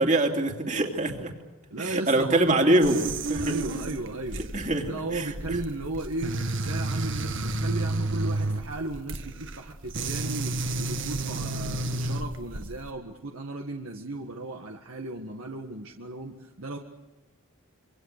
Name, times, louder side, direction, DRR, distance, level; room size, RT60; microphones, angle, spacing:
voice 1, 0.0-1.3 1.8-3.0 3.3-3.5 4.5-5.0, right 1 dB, 35° right, 3 dB, 2.8 m, -23 dB
voice 2, 1.7-2.9 3.4-4.4 4.8-16.8, right 2 dB, 75° right, 2 dB, 1.7 m, -35 dB
sound 1, 2.8-12.9, right 2 dB, 60° right, 1.6 m, -31 dB
26.5 x 24.5 x 6.7 m, 1.2 s
head